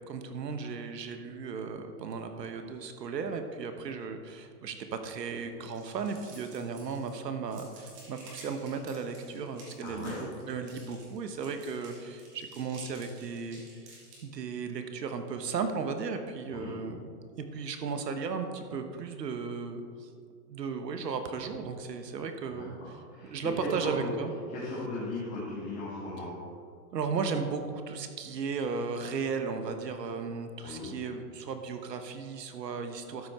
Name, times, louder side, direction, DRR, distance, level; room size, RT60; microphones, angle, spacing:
voice 1, 0.1-13.6 14.2-17.1 17.4-20.1 20.5-23.0 23.2-24.3 26.9-33.3, right 5 dB, 90° right, 7 dB, 1.3 m, -35 dB
sound 1, 5.7-7.2 7.5-14.2, right 2 dB, 25° right, 2.3 m, -53 dB
voice 2, 9.8-10.2 16.5-16.8 22.5-23.3 23.6-24.1 24.5-26.4 30.6-30.9, left 2 dB, 15° left, -7 dB, 1.6 m, -37 dB
12.5 x 6.5 x 4.4 m, 2.1 s
hypercardioid pair, 160°, 48 cm